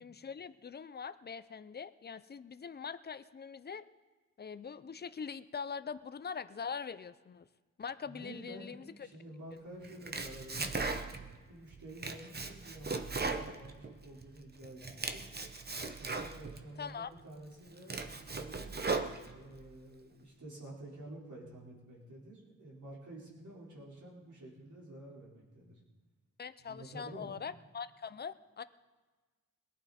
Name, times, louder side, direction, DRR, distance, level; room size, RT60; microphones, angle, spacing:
voice 1, 0.0-3.8 4.4-7.5 7.8-9.1 16.8-17.1 26.4-28.6, left 6 dB, 30° left, 14 dB, 0.5 m, -43 dB
voice 2, 8.0-10.9 11.5-15.3 16.0-18.8 19.3-25.8 26.6-27.3, right 1 dB, 65° right, -6 dB, 4.4 m, -50 dB
Domestic sounds home sounds, 9.8-11.4 11.7-14.3 14.6-16.6 17.2-17.3 17.7-19.6, right 3 dB, 30° right, 0.8 m, -38 dB
21.5 x 11.5 x 4.3 m, 1.3 s
wide cardioid pair, 140°, 32 cm